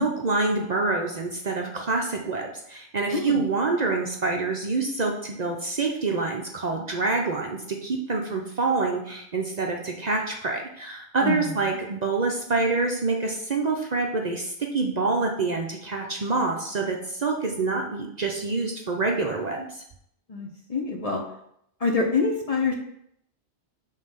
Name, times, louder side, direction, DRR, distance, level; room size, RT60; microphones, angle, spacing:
voice 1, 0.0-19.8, right 3 dB, 45° right, 1 dB, 0.7 m, -26 dB
voice 2, 20.3-21.2 21.8-22.7, left 4 dB, 40° left, 1 dB, 0.8 m, -25 dB
5.6 x 3.3 x 5.6 m, 0.73 s
omnidirectional pair, 1.1 m